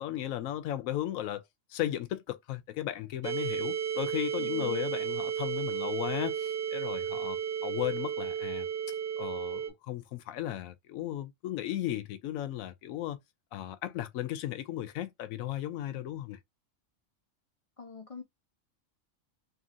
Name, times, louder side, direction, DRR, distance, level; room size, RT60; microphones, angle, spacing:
voice 1, 0.0-1.4 1.7-8.7 9.2-13.2 13.5-16.4, left 13 dB, 85° left, 1.0 m, -35 dB
sound 1, 3.2-9.7, right 8 dB, 55° right, 0.9 m, -33 dB
voice 2, 4.4-4.9 17.8-18.2, left 5 dB, 55° left, 0.3 m, -45 dB
2.8 x 2.8 x 2.5 m
omnidirectional pair, 1.4 m